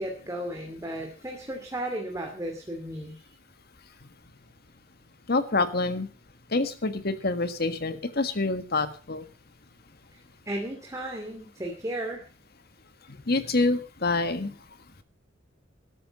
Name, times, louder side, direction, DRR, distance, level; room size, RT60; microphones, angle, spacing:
voice 1, 0.0-3.2 10.5-12.2, right 1 dB, 15° right, 1 dB, 2.6 m, -34 dB
voice 2, 5.3-6.1 6.5-9.2 13.3-14.5, left 3 dB, 55° left, 10 dB, 1.6 m, -26 dB
13.5 x 13.0 x 5.3 m, 0.36 s
head